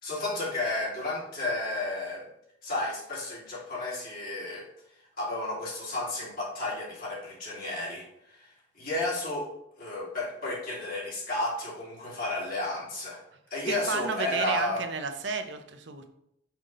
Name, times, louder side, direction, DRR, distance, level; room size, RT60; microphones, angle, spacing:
voice 1, 0.0-2.3 2.6-4.7 5.2-8.5 8.7-9.5 9.8-13.2 13.5-14.9, left 2 dB, 50° left, -5 dB, 2.5 m, -32 dB
voice 2, 13.7-16.1, right 4 dB, 70° right, 7 dB, 0.7 m, -32 dB
5.9 x 5.3 x 3.7 m, 0.76 s
head